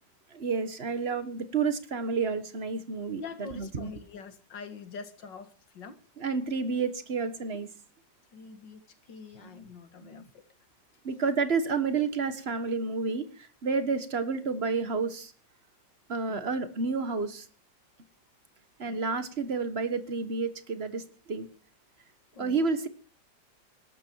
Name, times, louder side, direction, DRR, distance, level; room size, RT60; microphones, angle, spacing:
voice 1, 0.3-3.9 6.2-7.7 9.4-9.6 10.0-10.2 11.0-15.3 16.1-17.4 18.8-21.5 22.4-22.9, right 4 dB, 35° right, 1.6 m, -30 dB
voice 2, 3.2-6.0 8.3-8.8 9.1-10.4 16.3-16.4 18.9-19.0 22.3-22.6, left 5 dB, 75° left, 2.3 m, -44 dB
21.0 x 12.0 x 4.6 m
omnidirectional pair, 2.0 m